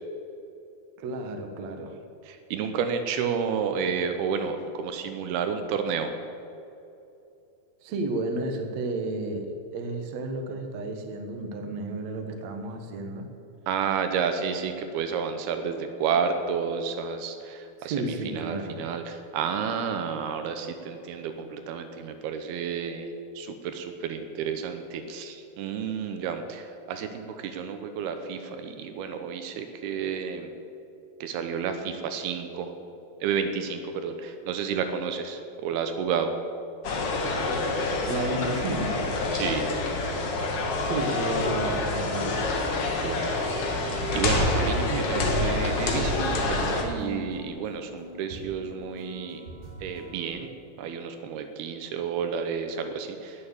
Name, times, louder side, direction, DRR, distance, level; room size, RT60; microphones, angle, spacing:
voice 1, 1.0-2.0 7.8-13.3 17.8-18.8 38.1-39.2 40.8-42.5, right 2 dB, 60° right, 4 dB, 1.9 m, -32 dB
voice 2, 2.5-6.1 13.7-17.9 18.4-23.1 23.4-26.6 26.9-30.5 31.2-32.7 33.2-36.3 39.3-39.7 43.0-49.4 49.8-50.5 50.8-53.3, right 6 dB, 80° right, 7 dB, 2.7 m, -31 dB
sound 1, 36.8-46.8, left 2 dB, 55° left, 1.6 m, -27 dB
sound 2, 39.7-50.3, right 1 dB, 40° right, 4.4 m, -43 dB
18.0 x 7.0 x 7.2 m, 2.7 s
omnidirectional pair, 4.7 m